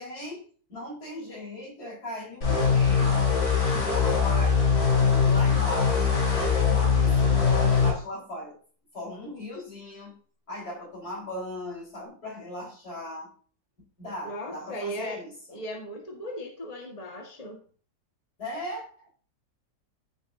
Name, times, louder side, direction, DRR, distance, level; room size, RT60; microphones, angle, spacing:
voice 1, 0.0-3.2 3.7-4.7 5.1-8.6 8.9-10.2 10.5-13.3 14.0-15.6 18.4-19.1, left 1 dB, 65° left, -4 dB, 5.4 m, -38 dB
sound 1, 2.4-7.9, left 6 dB, 85° left, 4.3 m, -22 dB
voice 2, 14.2-15.2 15.5-17.6, equal, 25° left, 1 dB, 1.8 m, -37 dB
14.5 x 7.2 x 2.8 m, 0.43 s
omnidirectional pair, 1.8 m